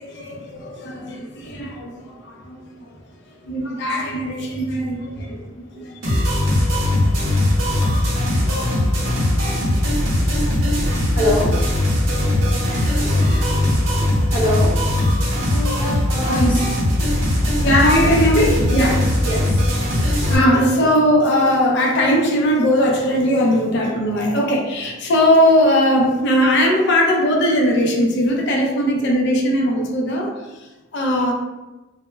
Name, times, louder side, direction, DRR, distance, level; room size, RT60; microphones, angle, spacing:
voice 1, 0.0-3.0 3.4-9.2 9.5-9.8 10.2-10.5 10.9-11.1 12.6-14.3 15.5-15.7 16.1-16.6 16.9-19.3 19.8-31.3, equal, 60° left, 0 dB, 0.4 m, -20 dB
sound 1, 6.0-20.3, left 1 dB, 75° right, 0.7 m, -19 dB
voice 2, 11.1-11.5 14.2-14.8 15.5-16.6 19.2-19.7, left 1 dB, 45° left, -9 dB, 0.9 m, -24 dB
2.0 x 2.0 x 3.2 m, 1.1 s
head